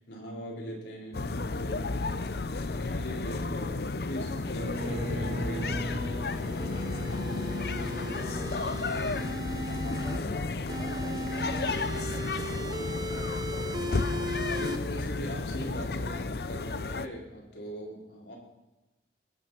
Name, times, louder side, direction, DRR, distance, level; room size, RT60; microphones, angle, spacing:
voice 1, 0.0-1.9 2.7-6.2 8.0-8.2 14.5-18.4, equal, 80° left, -2 dB, 4.5 m, -40 dB
sound 1, 1.1-17.1, left 3 dB, 60° left, 0.6 m, -32 dB
Bowed string instrument, 4.3-9.7, equal, 45° right, 3.0 m, -40 dB
sound 2, 6.2-10.2 10.7-14.8, right 1 dB, 25° right, 0.7 m, -37 dB
voice 2, 7.9-8.8 10.0-11.8 12.1-13.8, left 1 dB, 15° left, 5 dB, 1.0 m, -46 dB
20.5 x 9.6 x 5.8 m, 1.1 s
head